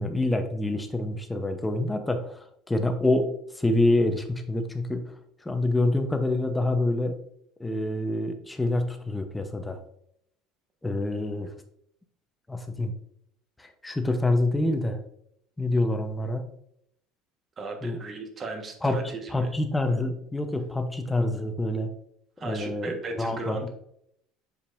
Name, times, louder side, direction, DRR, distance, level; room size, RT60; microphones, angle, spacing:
voice 1, 0.0-5.1 5.4-7.2 7.6-9.8 10.8-11.5 12.5-12.9 13.6-15.0 15.6-16.5 17.8-18.0 18.8-19.0 19.3-21.9 22.4-23.7, left 2 dB, 10° left, 6 dB, 0.8 m, -27 dB
voice 2, 17.6-19.5 22.4-23.7, right 3 dB, 30° right, 3 dB, 1.4 m, -36 dB
7.3 x 5.2 x 2.6 m, 0.71 s
cardioid pair, 130°, 0 cm